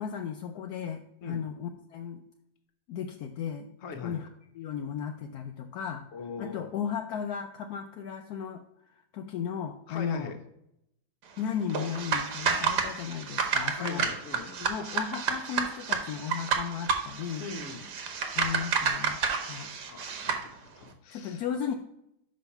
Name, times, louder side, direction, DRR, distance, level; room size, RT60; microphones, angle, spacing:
voice 1, 0.0-2.2 2.9-3.7 4.0-4.3 4.6-6.1 6.4-8.6 9.1-10.3 11.4-14.1 14.6-17.5 18.3-19.7 21.1-21.7, left 8 dB, 70° left, 5 dB, 0.9 m, -35 dB
voice 2, 3.8-4.2 6.1-6.7 9.9-10.4 13.8-14.6 17.4-17.9 19.6-21.5, left 4 dB, 50° left, 6 dB, 1.1 m, -41 dB
sound 1, 11.7-20.5, right 6 dB, 60° right, 1.5 m, -30 dB
6.2 x 5.2 x 5.7 m, 0.79 s
omnidirectional pair, 2.2 m